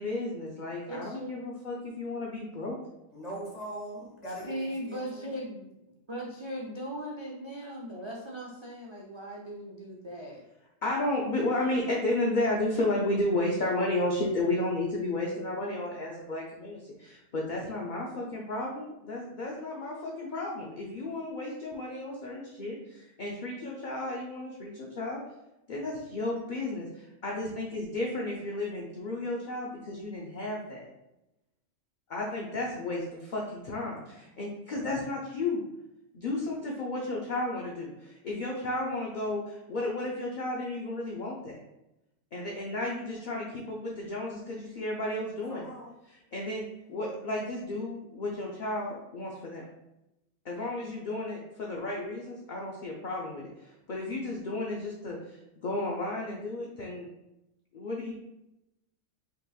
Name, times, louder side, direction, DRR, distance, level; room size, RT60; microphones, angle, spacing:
voice 1, 0.0-2.8 10.8-25.2 25.7-26.9 27.2-30.9 32.1-33.4 33.7-35.6 36.1-41.6 42.3-45.6 46.3-49.6 50.4-53.5 53.9-55.2 55.6-57.1 57.7-58.1, left 2 dB, 50° left, -2 dB, 0.6 m, -33 dB
voice 2, 0.9-1.5 4.4-5.7 6.1-10.5, equal, 40° right, -3 dB, 0.4 m, -38 dB
voice 3, 3.1-5.3 45.5-46.0, right 1 dB, 30° left, -4 dB, 1.5 m, -41 dB
5.4 x 3.8 x 2.3 m, 0.92 s
omnidirectional pair, 1.4 m